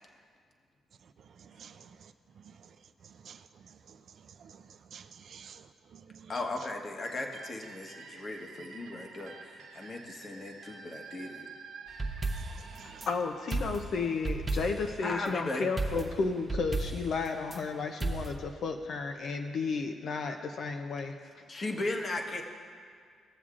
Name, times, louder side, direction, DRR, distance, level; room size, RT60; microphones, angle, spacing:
voice 1, 1.0-2.8 3.0-6.4 12.4-13.1, right 7 dB, 65° right, 10 dB, 0.5 m, -53 dB
voice 2, 6.3-11.5 15.0-15.7 21.5-22.4, left 2 dB, 40° left, 2 dB, 1.2 m, -37 dB
sound 1, 7.0-14.6, right 4 dB, 90° right, 0.9 m, -50 dB
sound 2, 11.9-13.1 13.5-15.0 15.8-17.6 18.0-18.3, right 2 dB, 20° right, 0.9 m, -34 dB
voice 3, 12.8-21.2, left 4 dB, 65° left, 4 dB, 0.5 m, -33 dB
17.0 x 7.1 x 2.5 m, 2.1 s
cardioid pair, 75°, 0 cm